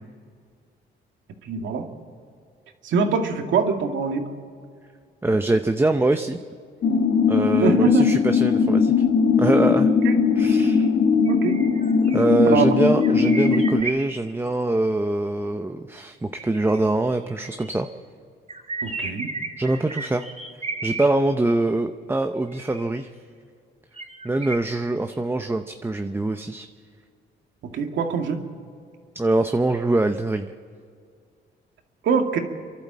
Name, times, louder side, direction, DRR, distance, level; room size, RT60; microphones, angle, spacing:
voice 1, 1.4-1.9 2.8-4.3 7.6-8.1 10.0-10.1 11.3-11.6 12.5-13.0 18.8-19.3 27.7-28.4 32.0-32.4, right 5 dB, 70° right, 4 dB, 2.1 m, -23 dB
voice 2, 5.2-6.4 7.3-8.9 9.4-9.9 10.3-10.9 12.1-17.9 19.6-20.2 20.8-23.1 24.2-26.7 29.1-30.5, right 2 dB, 10° right, 7 dB, 0.7 m, -23 dB
sound 1, 6.8-13.8, left 5 dB, 55° left, 1.4 m, -19 dB
sound 2, 11.2-12.3 13.0-14.5 16.3-17.7 18.5-21.1 22.5-23.1 24.0-24.6, right 3 dB, 30° right, 2.9 m, -34 dB
30.0 x 11.5 x 7.5 m, 2.2 s
cardioid pair, 90°, 20 cm